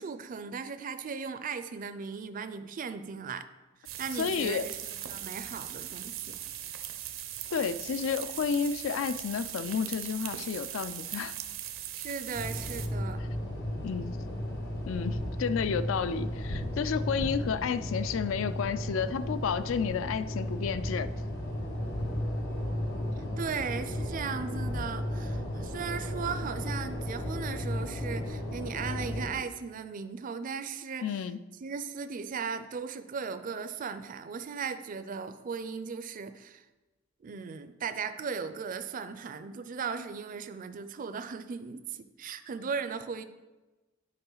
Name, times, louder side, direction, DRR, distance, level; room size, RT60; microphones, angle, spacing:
voice 1, 0.0-3.5 4.0-6.4 11.9-13.2 23.4-31.1 31.6-36.6 37.2-43.2, right 5 dB, 40° right, 11 dB, 0.4 m, -37 dB
sound 1, 3.9-12.9, right 11 dB, 85° right, 0.7 m, -40 dB
voice 2, 4.2-4.7 7.5-11.3 13.8-14.2 14.9-21.1 31.0-31.4, left 6 dB, 70° left, 14 dB, 0.4 m, -31 dB
sound 2, 12.3-29.3, left 1 dB, 55° left, 1.1 m, -34 dB
9.8 x 4.8 x 3.9 m, 1.1 s
head